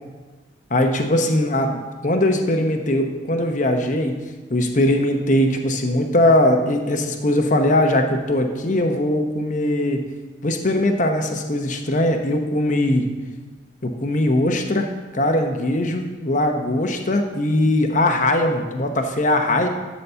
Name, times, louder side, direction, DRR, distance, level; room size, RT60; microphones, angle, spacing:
voice 1, 0.7-1.7 2.0-4.1 4.5-10.0 10.4-13.0 13.8-14.9 15.1-19.7, left 1 dB, 40° left, 4 dB, 0.9 m, -20 dB
12.0 x 4.2 x 6.8 m, 1.3 s
head